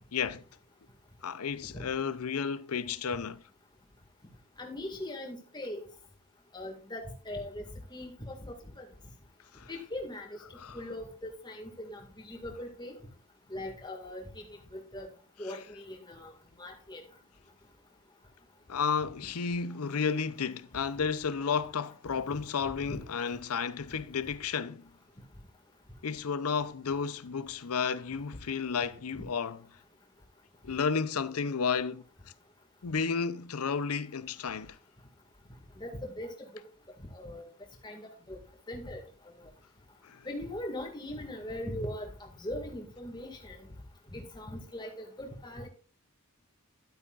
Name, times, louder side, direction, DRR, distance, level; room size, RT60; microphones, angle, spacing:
voice 1, 0.1-0.4 1.2-3.4 9.5-9.7 10.5-10.8 18.7-24.9 26.0-29.6 30.6-32.0 32.8-34.8 40.0-40.3, left 6 dB, 85° left, 0.6 m, -32 dB
voice 2, 4.6-5.8 6.5-7.6 7.9-8.8 9.7-10.4 10.7-13.0 13.5-14.5 14.7-15.1 15.4-16.3 16.6-17.0 22.8-23.0 29.2-29.3 35.8-36.3 37.1-37.4 37.8-38.4 38.7-39.0 40.3-42.1 42.4-43.6 44.1-45.7, left 1 dB, 20° left, 2.0 m, -40 dB
11.5 x 8.5 x 2.5 m
head